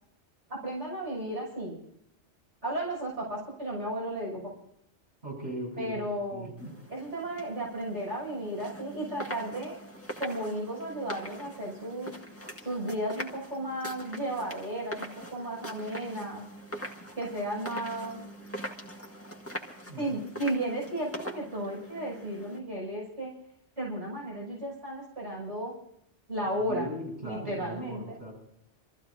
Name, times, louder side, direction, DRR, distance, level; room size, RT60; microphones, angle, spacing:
voice 1, 0.5-1.8 2.6-4.4 5.8-6.5 6.9-9.7 10.2-12.1 12.6-16.4 17.2-18.1 20.0-23.3 23.8-25.7 26.3-26.9 27.2-28.0, right 1 dB, 80° right, -4 dB, 7.2 m, -34 dB
voice 2, 5.2-5.9 6.3-6.7 19.9-20.1 26.7-28.3, right 1 dB, 65° right, -3 dB, 7.2 m, -38 dB
sound 1, 6.6-22.6, equal, 10° left, 1.8 m, -43 dB
29.0 x 14.5 x 2.7 m, 0.73 s
omnidirectional pair, 1.2 m